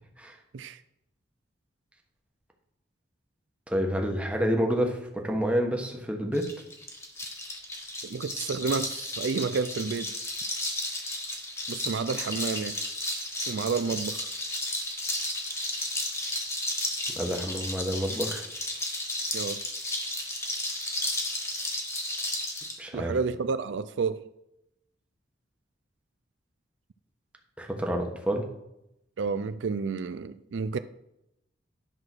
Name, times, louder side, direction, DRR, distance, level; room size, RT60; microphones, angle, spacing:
voice 1, 3.7-6.4 17.1-18.4 22.8-23.1 27.6-28.4, equal, 5° right, 1.2 m, -28 dB
sound 1, 6.3-22.8, left 1 dB, 15° left, 1.5 m, -33 dB
voice 2, 8.0-10.2 11.7-12.8 13.5-14.3 19.3-19.6 22.9-24.3 29.2-30.8, right 5 dB, 75° right, 0.4 m, -30 dB
10.5 x 4.8 x 6.1 m
head